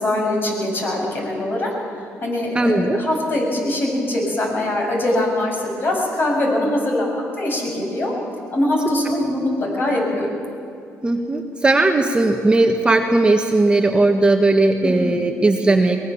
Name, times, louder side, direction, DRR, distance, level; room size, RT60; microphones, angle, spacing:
voice 1, 0.0-1.7 2.2-7.1 7.4-8.1 8.5-10.3 14.8-15.1, left 1 dB, 40° left, -1 dB, 7.7 m, -22 dB
voice 2, 2.5-3.0 11.0-16.0, right 2 dB, 20° right, 3 dB, 1.5 m, -17 dB
22.5 x 20.5 x 7.2 m, 2.4 s
cardioid pair, 105°, 5 cm